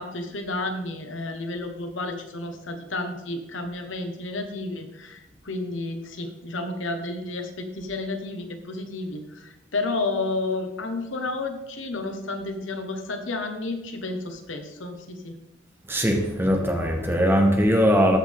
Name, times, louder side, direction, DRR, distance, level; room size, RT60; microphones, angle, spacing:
voice 1, 0.0-15.3, left 2 dB, 85° left, 6 dB, 1.2 m, -31 dB
voice 2, 15.9-18.2, equal, 10° right, 2 dB, 1.1 m, -20 dB
14.5 x 5.4 x 3.6 m, 0.94 s
head